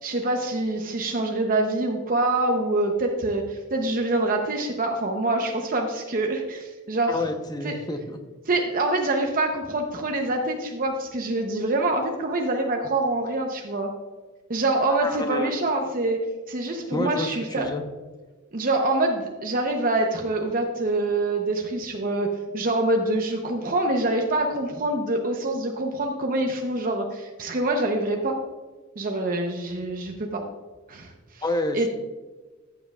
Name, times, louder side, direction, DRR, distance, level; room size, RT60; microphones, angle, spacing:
voice 1, 0.0-7.3 7.6-7.7 8.5-13.9 14.5-17.7 18.5-28.4 29.0-30.4 30.9-31.4 31.7-31.9, right 2 dB, 45° right, 2 dB, 0.8 m, -25 dB
voice 2, 7.1-8.2 14.9-15.5 16.9-17.8 31.4-31.9, left 1 dB, 20° left, 6 dB, 0.8 m, -29 dB
14.0 x 7.8 x 2.4 m, 1.3 s
head